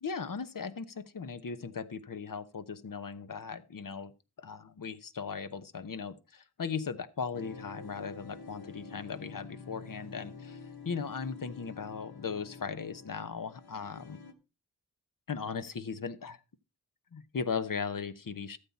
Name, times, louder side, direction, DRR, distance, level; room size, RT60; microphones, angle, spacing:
voice 1, 0.0-4.1 4.4-10.6 10.8-14.2 15.3-16.4 17.1-18.6, left 5 dB, 60° left, 12 dB, 0.9 m, -38 dB
sound 1, 7.3-14.3, left 4 dB, 75° left, 1.3 m, -48 dB
13.0 x 7.3 x 4.1 m, 0.29 s
wide cardioid pair, 70°, 38 cm